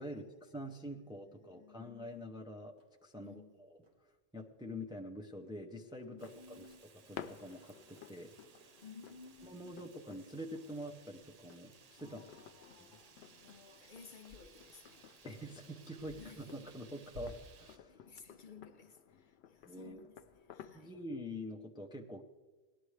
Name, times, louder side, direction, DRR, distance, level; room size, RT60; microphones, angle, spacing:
voice 1, 0.0-2.7 3.0-3.8 4.3-6.7 7.1-8.3 8.6-8.8 9.4-12.2 15.2-18.0 19.7-20.1 20.7-22.2, equal, 5° right, 0.6 m, -46 dB
voice 2, 1.1-1.9 3.2-3.6 6.0-6.9 8.8-9.8 12.0-15.5 16.2-16.5 17.9-20.9, left 5 dB, 55° left, 0.8 m, -57 dB
sound 1, 2.8-20.9, left 3 dB, 85° right, 2.2 m, -63 dB
sound 2, 6.0-21.0, left 9 dB, 90° left, 0.8 m, -56 dB
Fire, 6.2-17.8, right 6 dB, 50° right, 0.6 m, -62 dB
18.5 x 11.5 x 3.3 m
omnidirectional pair, 1.1 m